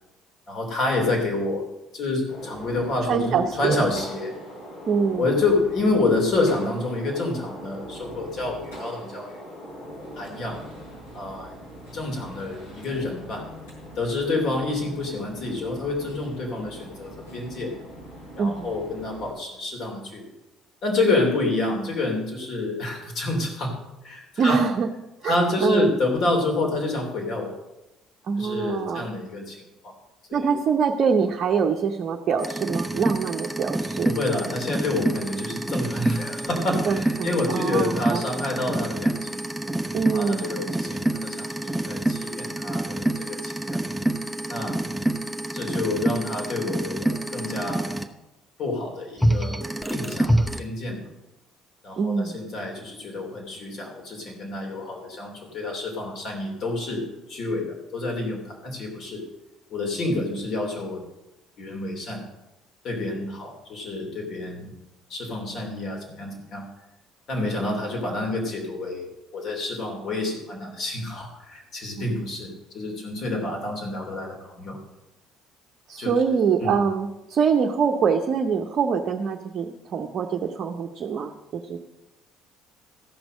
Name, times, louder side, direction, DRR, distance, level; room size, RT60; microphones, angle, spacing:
voice 1, 0.5-1.7 1.9-4.4 5.2-9.3 10.2-10.6 11.1-11.5 11.9-13.5 14.0-17.7 18.3-20.2 20.8-24.6 25.2-27.5 28.4-29.6 29.8-29.9 30.3-30.5 34.0-39.5 40.1-43.8 44.5-44.8 45.5-47.9 48.6-51.1 51.8-59.2 59.7-61.0 61.6-62.2 62.8-64.8 65.1-66.6 67.3-74.8 76.0-76.1 76.6-76.8, left 2 dB, 55° left, 1 dB, 3.0 m, -28 dB
Gunshot gunfire, 2.3-19.3, equal, 80° left, 4.2 m, -41 dB
voice 2, 3.1-3.8 4.9-5.3 18.4-18.7 24.4-24.9 25.2-25.9 28.3-29.0 30.3-34.1 36.9-38.5 39.9-40.7 52.0-52.4 72.0-72.4 75.9-81.8, right 6 dB, 50° right, 2 dB, 0.8 m, -24 dB
sound 1, 32.4-48.0 49.2-50.6, right 1 dB, ahead, 0.9 m, -27 dB
14.0 x 6.1 x 6.4 m, 0.98 s
hypercardioid pair, 55°, 0 cm